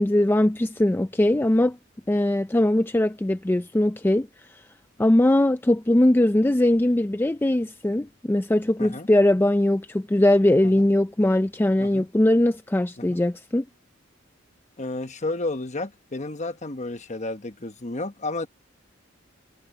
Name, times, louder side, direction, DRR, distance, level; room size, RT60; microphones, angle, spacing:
voice 1, 0.0-1.8 2.1-4.3 5.0-13.6, left 1 dB, 10° left, 0.4 m, -21 dB
voice 2, 14.8-18.5, left 2 dB, 35° left, 1.1 m, -32 dB
head